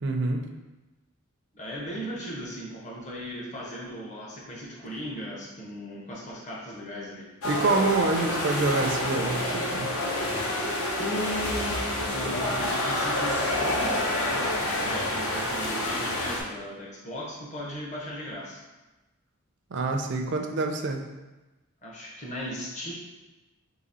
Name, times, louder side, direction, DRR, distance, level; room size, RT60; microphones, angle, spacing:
voice 1, 0.0-0.4 7.4-9.9 19.7-21.0, right 3 dB, 50° right, 3 dB, 0.4 m, -26 dB
voice 2, 1.5-7.3 11.0-11.8 12.1-18.6 21.8-22.9, equal, 30° left, -3 dB, 0.7 m, -37 dB
sound 1, 7.4-16.4, left 1 dB, 75° left, 0.8 m, -28 dB
3.9 x 2.8 x 4.1 m, 1.1 s
head